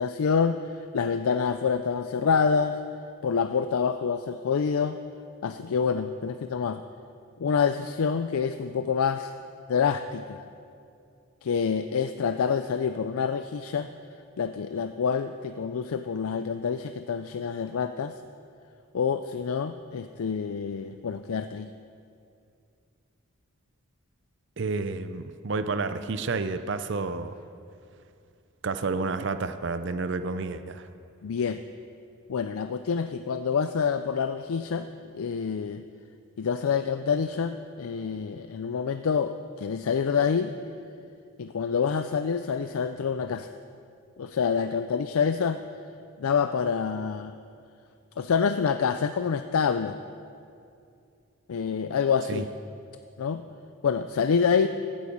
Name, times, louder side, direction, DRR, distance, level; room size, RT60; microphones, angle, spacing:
voice 1, 0.0-2.8 3.2-5.0 5.4-6.8 7.4-9.3 9.7-10.4 11.4-13.9 14.4-18.1 18.9-21.7 31.2-31.6 32.3-35.8 36.4-40.5 41.4-43.5 44.2-45.6 46.2-47.4 48.2-50.0 51.5-52.5 53.2-53.4 53.8-54.7, left 6 dB, 75° left, 9 dB, 0.4 m, -27 dB
voice 2, 24.6-27.3 28.6-30.9 52.3-52.4, right 4 dB, 55° right, 10 dB, 0.5 m, -30 dB
15.5 x 9.0 x 5.3 m, 2.5 s
head